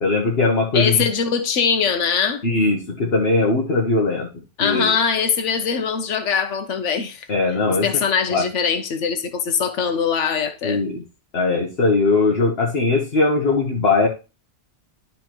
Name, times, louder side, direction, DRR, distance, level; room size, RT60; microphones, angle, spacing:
voice 1, 0.0-1.0 2.4-4.3 4.6-4.9 7.3-7.9 8.3-8.4 10.6-11.0 11.3-14.1, left 3 dB, 55° left, 1.4 m, -20 dB
voice 2, 0.7-2.4 4.6-7.3 7.7-10.8, left 6 dB, 80° left, 1.2 m, -22 dB
12.0 x 4.4 x 3.0 m
omnidirectional pair, 1.2 m